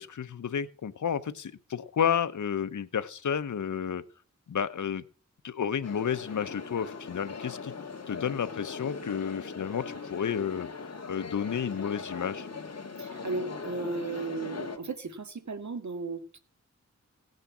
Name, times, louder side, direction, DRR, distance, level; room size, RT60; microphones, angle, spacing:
voice 1, 0.0-4.0 4.5-5.0 5.4-7.7 8.1-12.5, left 8 dB, 75° left, 0.9 m, -31 dB
sound 1, 5.8-14.8, left 4 dB, 55° left, 2.4 m, -40 dB
voice 2, 13.0-16.4, right 3 dB, 70° right, 2.0 m, -35 dB
16.5 x 6.6 x 7.4 m
wide cardioid pair, 60°, 30 cm